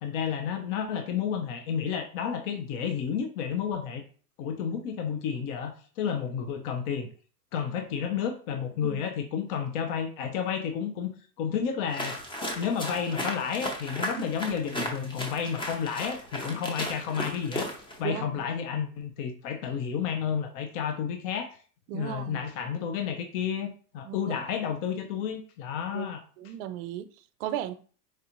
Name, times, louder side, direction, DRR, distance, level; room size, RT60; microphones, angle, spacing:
voice 1, 0.0-4.0 4.4-7.1 7.5-12.2 12.6-17.7 18.0-21.6 21.9-26.2, left 7 dB, 50° left, 0.7 m, -31 dB
sound 1, 11.9-18.0, left 1 dB, 10° left, 0.6 m, -35 dB
voice 2, 21.9-22.4 24.0-24.4 25.9-26.1 26.4-27.1 27.4-27.7, right 11 dB, 50° right, 0.5 m, -35 dB
4.6 x 2.5 x 2.9 m
hypercardioid pair, 115°, 49 cm